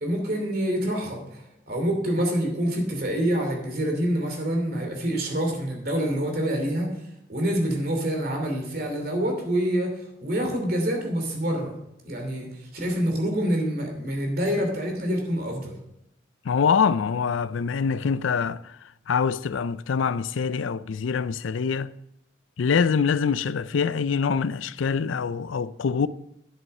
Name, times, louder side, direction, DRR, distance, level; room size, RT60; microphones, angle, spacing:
voice 1, 0.0-6.9 7.3-11.7 12.0-15.7, equal, 50° right, 2.8 m, -26 dB
voice 2, 16.4-18.8 19.1-21.9 22.6-26.1, left 6 dB, 85° left, 0.4 m, -24 dB
10.0 x 7.9 x 5.4 m
head